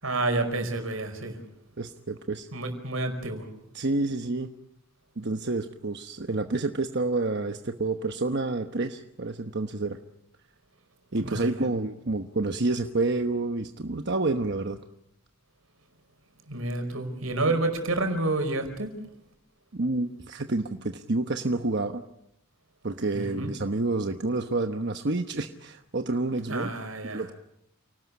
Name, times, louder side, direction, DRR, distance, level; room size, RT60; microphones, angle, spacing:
voice 1, 0.0-1.4 2.5-3.5 11.2-11.6 16.5-19.0 23.1-23.5 26.5-27.3, right 2 dB, 85° right, 7 dB, 5.1 m, -29 dB
voice 2, 1.8-2.5 3.7-4.5 5.2-10.0 11.1-14.8 19.7-22.0 22.8-26.7 27.0-27.3, right 2 dB, 55° right, 6 dB, 1.1 m, -29 dB
29.0 x 19.0 x 8.4 m, 0.78 s
head